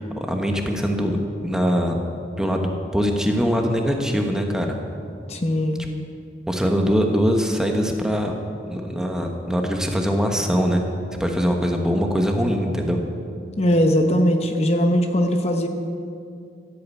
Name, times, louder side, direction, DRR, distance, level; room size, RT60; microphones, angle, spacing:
voice 1, 0.0-2.0 2.4-4.8 6.5-8.3 8.7-10.8 11.2-13.0, equal, 5° right, 2 dB, 1.1 m, -22 dB
voice 2, 5.3-5.8 13.6-15.7, equal, 35° left, 5 dB, 0.9 m, -20 dB
15.0 x 8.6 x 8.4 m, 2.4 s
head